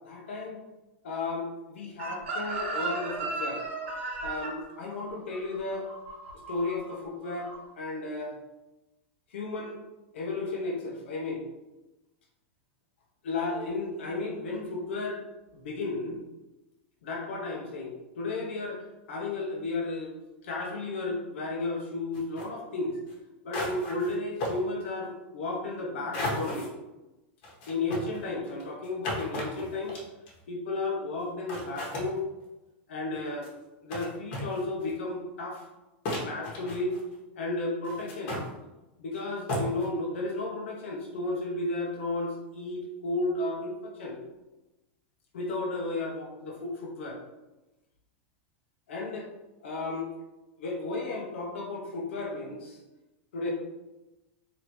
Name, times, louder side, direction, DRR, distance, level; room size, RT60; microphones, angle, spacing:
voice 1, 0.0-0.6 1.0-3.6 4.2-5.9 6.5-8.4 9.3-9.8 10.1-11.4 13.2-15.2 15.5-16.2 17.0-18.8 19.1-20.1 20.4-23.0 23.4-26.7 27.7-30.0 30.5-32.2 32.9-33.5 33.8-35.6 36.2-37.0 37.3-38.4 39.0-44.2 45.3-47.2 48.9-49.3 49.6-50.1 50.6-52.8 53.3-53.5, left 2 dB, 85° left, -1 dB, 1.0 m, -33 dB
Chicken rooster, 2.0-6.9 7.2-7.6, right 3 dB, 85° right, 1.0 m, -35 dB
sound 1, 22.1-22.4 23.1-23.2 23.5-24.1 24.4-24.6 26.1-26.7 27.4-30.4 31.2-31.3 31.5-32.1 33.1-33.5 33.9-34.0 34.3-34.9 35.6-35.7 36.0-37.1 37.8-38.5 39.1-39.2 39.5-39.9, left 1 dB, 60° left, 1.5 m, -34 dB
3.6 x 3.5 x 3.1 m, 1.0 s
supercardioid pair, 125°, 6 cm